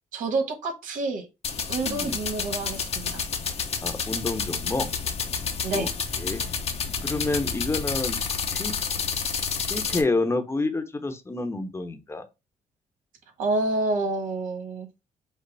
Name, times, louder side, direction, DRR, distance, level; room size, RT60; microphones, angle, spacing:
voice 1, 0.1-1.2 1.7-3.2 5.6-5.9 13.4-14.9, right 2 dB, 90° right, 1.4 m, -28 dB
sound 1, 1.4-10.0, left 6 dB, 50° left, 0.8 m, -29 dB
voice 2, 1.8-2.2 3.8-4.9 5.7-5.9 6.2-6.4 7.0-8.2 8.5-8.7 9.6-12.2, left 2 dB, 20° left, 0.8 m, -28 dB
5.4 x 2.0 x 3.9 m
cardioid pair, 95°, 13 cm